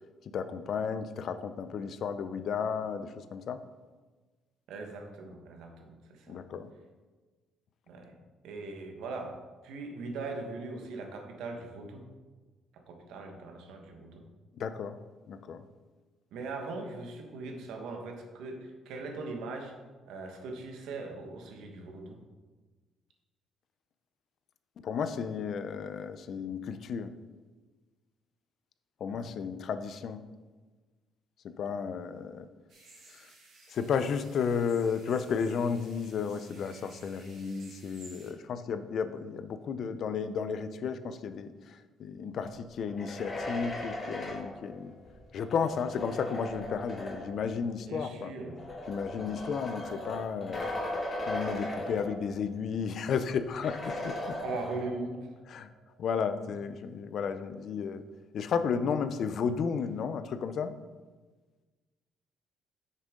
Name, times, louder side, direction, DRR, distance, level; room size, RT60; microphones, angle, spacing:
voice 1, 0.3-3.6 6.3-6.7 14.6-15.0 15.3-15.6 24.8-27.1 29.0-30.2 31.4-32.5 33.7-44.9 45.3-48.3 48.9-50.7 51.3-54.2 55.5-55.7 56.0-58.0 58.3-60.7, left 6 dB, 50° left, 11 dB, 0.5 m, -33 dB
voice 2, 4.7-6.4 7.9-8.2 8.4-9.4 9.6-12.0 12.7-14.2 16.3-19.7 20.1-22.2 29.1-29.3 47.8-48.6 49.1-49.4 54.4-55.3 56.5-56.6, right 3 dB, 85° right, 3 dB, 1.2 m, -40 dB
sound 1, 32.7-38.3, right 3 dB, 55° right, 2.2 m, -56 dB
sound 2, 42.8-47.5 48.4-52.6 52.9-53.0 53.6-55.2, left 1 dB, 25° left, 1.4 m, -38 dB
8.8 x 6.5 x 3.7 m, 1.3 s
cardioid pair, 160°, 0 cm